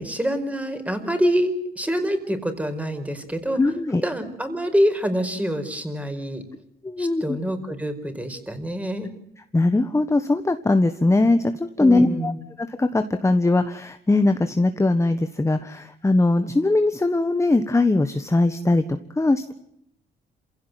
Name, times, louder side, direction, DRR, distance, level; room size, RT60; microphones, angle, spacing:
voice 1, 0.0-3.6 4.0-6.4 7.0-9.1 11.8-12.4, equal, 5° right, 8 dB, 5.0 m, -25 dB
voice 2, 3.6-4.0 6.8-7.4 9.5-12.3 12.6-18.8 19.2-19.5, left 2 dB, 15° left, 9 dB, 1.4 m, -20 dB
27.0 x 16.5 x 9.2 m, 0.76 s
cardioid pair, 90°, 20 cm